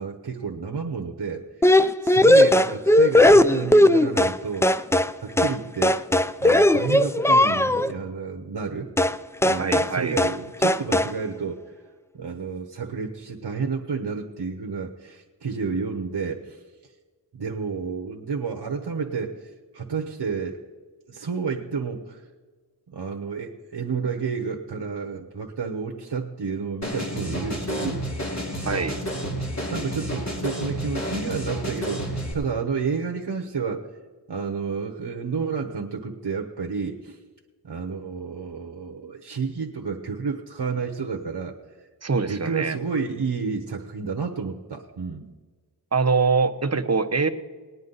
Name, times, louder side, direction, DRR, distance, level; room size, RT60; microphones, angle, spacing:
voice 1, 0.0-1.4 2.0-4.8 5.2-6.0 6.4-8.9 9.4-11.6 12.1-16.6 17.3-20.6 21.1-22.3 22.9-28.0 29.2-33.9 34.3-37.2 37.6-41.5 42.2-45.3, right 5 dB, 70° right, 3 dB, 1.0 m, -30 dB
sound 1, 1.6-4.4 4.6-5.1 5.4-5.6 5.8-7.9 9.0-9.2 9.4-9.9 10.2-10.4 10.6-11.1, left 1 dB, 5° left, 0.3 m, -17 dB
voice 2, 9.6-10.2 28.6-28.9 42.0-42.8 45.9-47.3, right 4 dB, 40° right, 8 dB, 0.9 m, -23 dB
sound 2, 26.8-32.3, equal, 40° left, 2.5 m, -30 dB
19.5 x 9.4 x 4.0 m, 1.4 s
wide cardioid pair, 55°, 41 cm